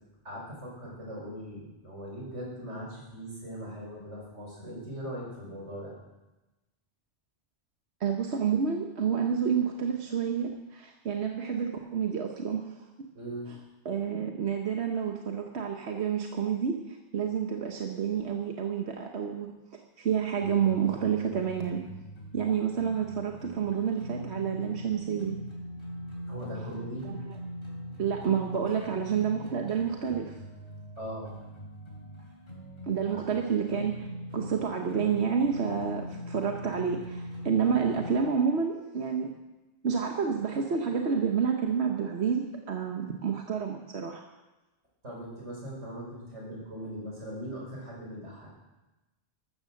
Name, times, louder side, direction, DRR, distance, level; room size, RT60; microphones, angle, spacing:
voice 1, 0.2-6.0 13.1-13.5 26.3-27.1 31.0-31.3 33.1-33.2 45.0-48.5, right 1 dB, 90° right, -2 dB, 5.7 m, -40 dB
voice 2, 8.0-12.8 13.8-19.5 20.0-21.9 22.3-25.4 27.1-27.2 28.0-30.3 32.9-34.1 34.3-39.4 39.8-44.2, right 7 dB, 65° right, 3 dB, 1.3 m, -29 dB
sound 1, 20.4-38.2, equal, 50° left, 3.8 m, -42 dB
14.0 x 13.0 x 6.5 m, 1.1 s
omnidirectional pair, 1.2 m